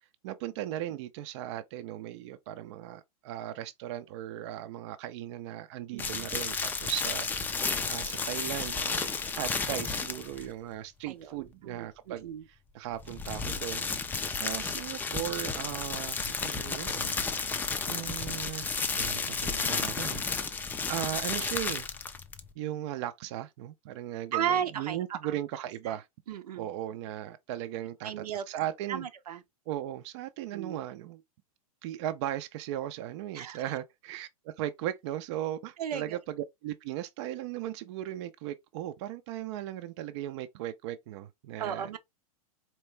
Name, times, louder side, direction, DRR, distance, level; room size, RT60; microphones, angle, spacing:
voice 1, 0.2-7.3 7.6-13.9 14.3-17.2 17.9-21.9 22.6-26.1 26.6-29.1 29.7-31.2 31.8-41.9, right 12 dB, 50° right, 0.6 m, -37 dB
voice 2, 5.9-6.3 11.1-12.4 24.3-25.4 25.9-26.0 26.3-26.7 28.0-28.4 28.9-29.4 30.5-30.8 33.3-33.7 35.8-36.2 41.6-42.0, right 8 dB, 85° right, 0.8 m, -35 dB
sound 1, 6.0-10.5 12.9-22.5, left 4 dB, 10° left, 0.4 m, -32 dB
4.4 x 3.0 x 3.2 m
hypercardioid pair, 140°, 19 cm